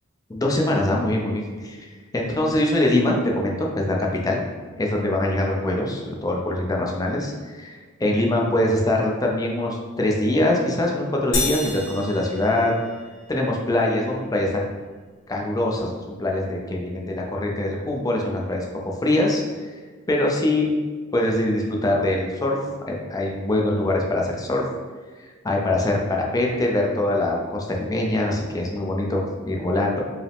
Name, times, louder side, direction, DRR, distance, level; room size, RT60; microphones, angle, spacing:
voice 1, 0.3-4.4 4.8-12.7 13.3-14.7 15.3-19.7 20.1-20.8 21.1-22.6 22.9-24.6 25.4-30.0, left 1 dB, 20° left, -1 dB, 0.5 m, -23 dB
sound 1, 11.3-13.3, left 2 dB, 60° left, 0.8 m, -29 dB
4.7 x 2.1 x 3.4 m, 1.4 s
head